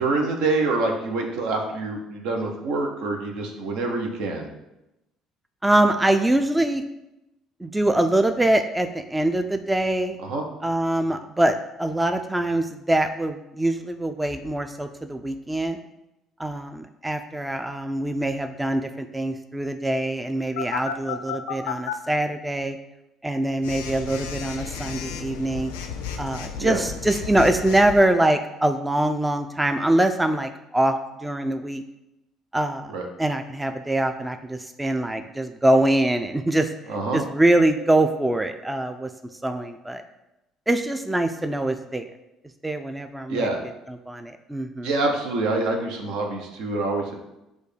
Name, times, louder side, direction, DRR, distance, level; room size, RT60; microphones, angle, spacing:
voice 1, 0.0-4.5 10.2-10.4 26.6-26.8 32.9-33.0 36.9-37.2 43.3-43.6 44.8-47.1, right 3 dB, 75° right, 2 dB, 0.7 m, -26 dB
voice 2, 5.6-6.8 7.6-10.2 10.6-15.8 16.4-22.8 23.2-25.7 26.2-31.8 32.5-32.9 33.2-36.7 37.1-39.1 39.4-40.0 40.7-42.1 42.6-43.5 43.9-44.9, right 1 dB, 10° right, 8 dB, 0.3 m, -23 dB
Telephone, 20.6-21.9 23.6-28.0, left 7 dB, 90° left, 0.4 m, -33 dB
6.2 x 2.4 x 3.3 m, 0.92 s
supercardioid pair, 70°, 0 cm